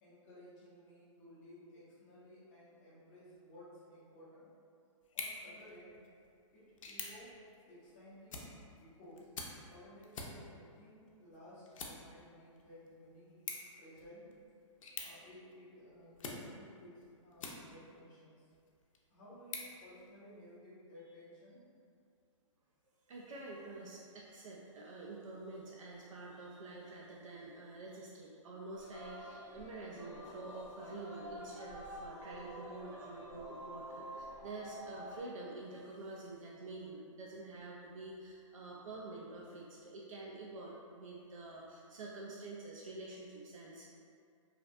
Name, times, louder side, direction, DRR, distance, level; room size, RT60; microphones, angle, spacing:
voice 1, 0.0-4.5 5.1-6.0 6.5-9.3 9.7-14.4 14.9-18.4 19.1-21.6, left 1 dB, 15° left, -10 dB, 0.5 m, -56 dB
sound 1, 5.0-18.0 18.5-20.6, left 4 dB, 75° left, 0.4 m, -50 dB
voice 2, 23.1-43.9, right 2 dB, 80° right, -4 dB, 0.4 m, -48 dB
Singing, 28.8-35.2, equal, 30° right, 0.7 m, -49 dB
2.6 x 2.0 x 2.4 m, 2.3 s
hypercardioid pair, 170°, 17 cm